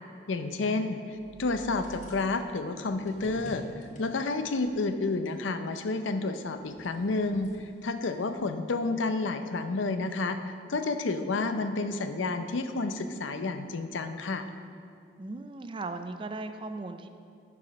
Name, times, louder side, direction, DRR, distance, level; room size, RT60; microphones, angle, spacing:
voice 1, 0.3-1.0 1.4-3.6 4.0-7.5 7.8-14.4, left 3 dB, 90° left, 9 dB, 0.5 m, -30 dB
sound 1, 1.1-6.0 6.4-8.4, equal, 40° left, 1.2 m, -50 dB
voice 2, 15.2-17.1, right 3 dB, 25° right, 8 dB, 0.4 m, -38 dB
9.7 x 5.0 x 5.8 m, 2.4 s
head